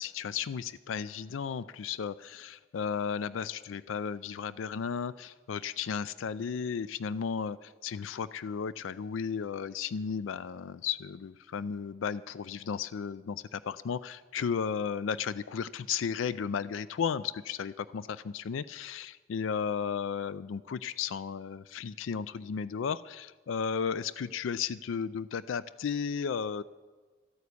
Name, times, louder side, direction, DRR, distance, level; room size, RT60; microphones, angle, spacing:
voice 1, 0.0-26.6, left 6 dB, 75° left, 16 dB, 0.4 m, -34 dB
13.5 x 9.4 x 8.4 m, 1.4 s
head